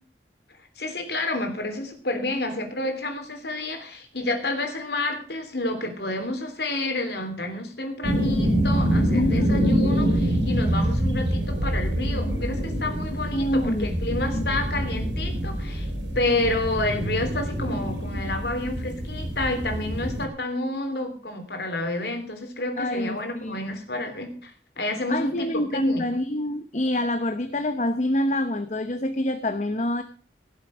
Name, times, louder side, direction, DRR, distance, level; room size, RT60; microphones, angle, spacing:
voice 1, 0.8-26.0, left 2 dB, 65° left, 5 dB, 3.2 m, -29 dB
sound 1, 8.0-20.3, equal, 85° right, 3.4 m, -25 dB
voice 2, 9.1-9.8 13.3-14.4 22.8-23.6 25.1-30.0, left 1 dB, 40° left, 9 dB, 0.9 m, -26 dB
17.0 x 7.4 x 6.2 m, 0.42 s
head